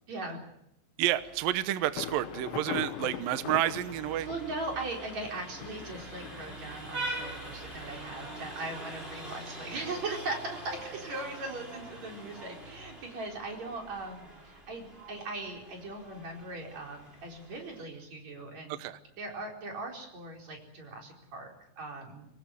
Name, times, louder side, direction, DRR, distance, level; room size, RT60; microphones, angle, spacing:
voice 1, 0.1-0.5 4.2-18.8 19.2-22.3, right 2 dB, 40° right, 1 dB, 5.2 m, -39 dB
Vehicle horn car horn honking, 1.0-17.8, right 1 dB, 10° right, 5.6 m, -44 dB
voice 2, 1.0-4.3 18.7-19.0, right 13 dB, 75° right, 12 dB, 2.2 m, -30 dB
Thunder, 2.0-7.6, left 12 dB, 90° left, 3.5 m, -42 dB
25.0 x 19.5 x 8.2 m, 0.80 s
omnidirectional pair, 5.3 m